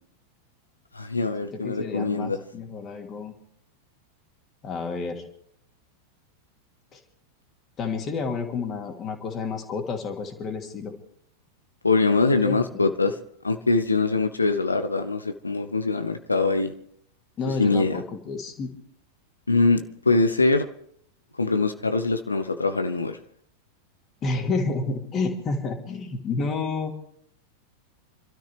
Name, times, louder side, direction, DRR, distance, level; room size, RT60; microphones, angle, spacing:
voice 1, 0.9-2.4 11.8-13.1 13.4-16.7 17.6-18.0 19.5-20.7 21.4-23.2, left 3 dB, 80° left, 9 dB, 0.9 m, -23 dB
voice 2, 1.5-3.3 4.6-5.2 6.9-7.0 7.8-10.9 12.4-12.8 17.4-18.7 24.2-26.9, left 4 dB, 30° left, 4 dB, 2.6 m, -30 dB
28.5 x 13.0 x 3.4 m, 0.69 s
figure-of-eight pair, 90°, 0 cm